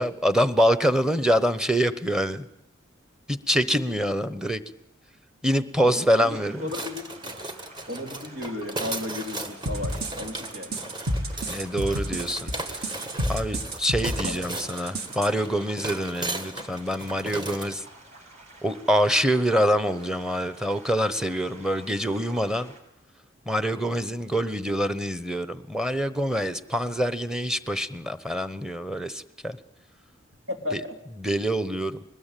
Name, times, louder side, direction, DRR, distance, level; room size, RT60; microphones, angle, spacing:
voice 1, 0.0-2.5 3.3-4.6 5.4-6.6 11.5-12.8 13.3-17.8 18.6-22.7 23.5-29.6 30.7-30.8 31.2-32.0, equal, 5° right, 13 dB, 1.0 m, -25 dB
voice 2, 5.8-7.4 7.9-10.8 14.3-14.5 30.5-31.0, left 2 dB, 85° right, 5 dB, 3.3 m, -34 dB
sound 1, 6.2-22.8, right 2 dB, 40° right, 6.3 m, -50 dB
sound 2, 6.7-17.8, right 2 dB, 25° right, 1.7 m, -36 dB
sound 3, 9.7-15.3, right 1 dB, 55° right, 2.3 m, -30 dB
22.0 x 20.5 x 9.1 m, 0.79 s
head